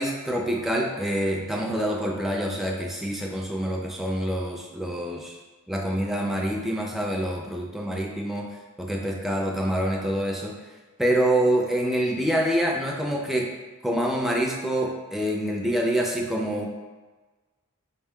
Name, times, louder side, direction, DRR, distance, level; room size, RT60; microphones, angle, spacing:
voice 1, 0.0-5.4 5.7-8.5 8.8-10.6 11.0-13.5 13.8-16.7, right 1 dB, ahead, -1 dB, 0.4 m, -26 dB
4.8 x 2.2 x 3.5 m, 1.3 s
head